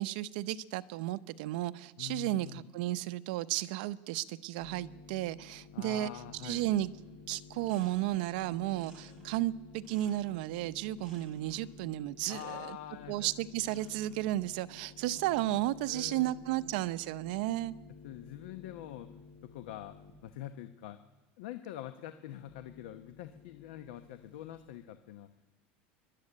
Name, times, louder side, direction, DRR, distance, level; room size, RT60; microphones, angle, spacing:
voice 1, 0.0-6.1 6.4-6.9 7.3-12.8 13.1-17.7, right 15 dB, 70° right, 0.8 m, -33 dB
voice 2, 2.0-2.7 5.7-6.7 12.3-13.3 15.9-16.5 18.0-19.1 19.4-21.0 21.4-25.3, left 12 dB, 85° left, 1.0 m, -45 dB
sound 1, 4.6-20.1 22.5-24.5, left 6 dB, 55° left, 6.4 m, -54 dB
sound 2, 6.9-7.1 7.4-8.3 8.7-10.5 11.0-11.7 12.2-12.7 13.5-14.2 15.0-15.5, right 2 dB, 10° right, 7.3 m, -59 dB
25.5 x 12.0 x 9.9 m
cardioid pair, 160°, 5 cm